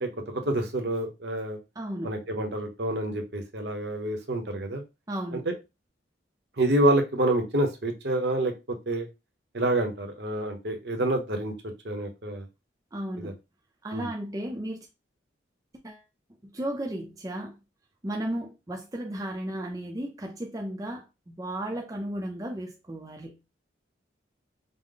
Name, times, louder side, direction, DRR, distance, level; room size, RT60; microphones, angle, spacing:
voice 1, 0.0-1.6 2.0-4.8 5.3-5.5 6.6-9.1 9.5-12.5 13.2-13.3 13.9-14.1, right 1 dB, 60° right, 0.9 m, -28 dB
voice 2, 1.8-2.1 5.1-5.4 12.9-13.4 13.8-14.9 15.8-16.0 16.4-17.6 18.0-23.4, right 1 dB, 20° right, 0.5 m, -34 dB
5.1 x 2.1 x 3.8 m
head